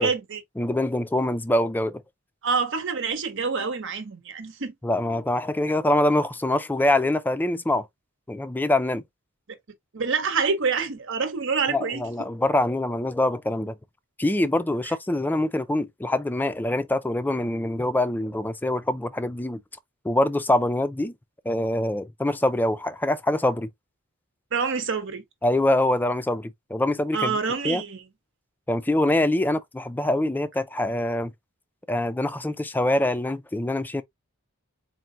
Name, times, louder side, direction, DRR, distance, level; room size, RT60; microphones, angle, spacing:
voice 1, 0.0-0.4 2.4-4.7 9.9-12.0 14.9-15.0 24.5-25.2 27.1-28.0, right 5 dB, 60° right, 1.0 m, -26 dB
voice 2, 0.6-2.0 4.8-7.9 8.3-9.0 11.7-13.7 14.2-19.6 20.0-21.1 21.5-23.7 25.4-27.4 27.6-27.8 28.7-31.3 31.9-34.0, left 1 dB, 10° left, 0.4 m, -24 dB
4.4 x 2.1 x 3.7 m
head